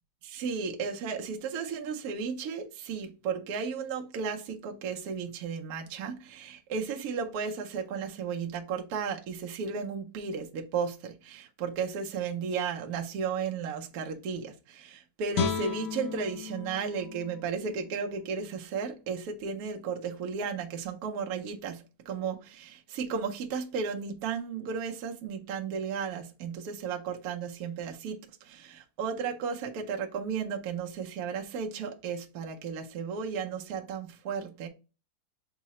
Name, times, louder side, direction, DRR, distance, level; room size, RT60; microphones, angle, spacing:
voice 1, 0.2-34.7, right 6 dB, 65° right, 1.0 m, -34 dB
Guitar, 15.3-18.5 18.9-19.1, left 7 dB, 70° left, 0.8 m, -35 dB
4.6 x 2.0 x 4.0 m
omnidirectional pair, 2.1 m